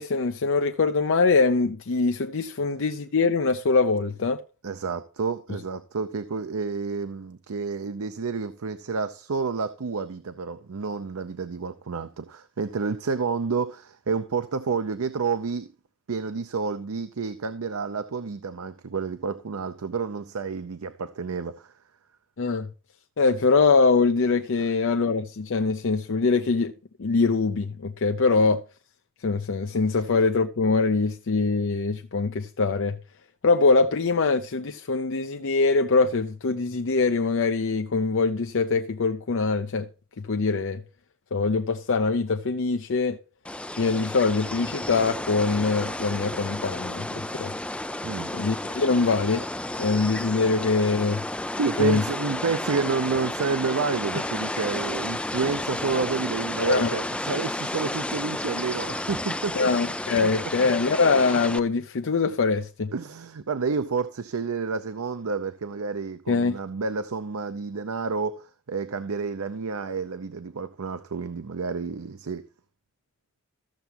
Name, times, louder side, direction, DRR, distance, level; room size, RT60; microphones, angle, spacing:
voice 1, 0.0-4.4 22.4-22.7 23.2-26.7 27.0-28.6 29.2-33.0 33.4-39.9 40.2-40.8 41.3-43.2 43.8-47.5 48.3-49.5 49.8-51.2 51.8-52.0 56.6-56.9 59.5-62.9 66.3-66.6, left 4 dB, 65° left, 0.6 m, -23 dB
voice 2, 4.6-15.7 16.1-21.7 48.0-48.3 51.6-59.7 60.2-60.5 62.9-72.4, right 4 dB, 80° right, 0.6 m, -29 dB
sound 1, 43.4-61.6, left 1 dB, 5° left, 0.4 m, -32 dB
14.5 x 7.0 x 2.9 m
head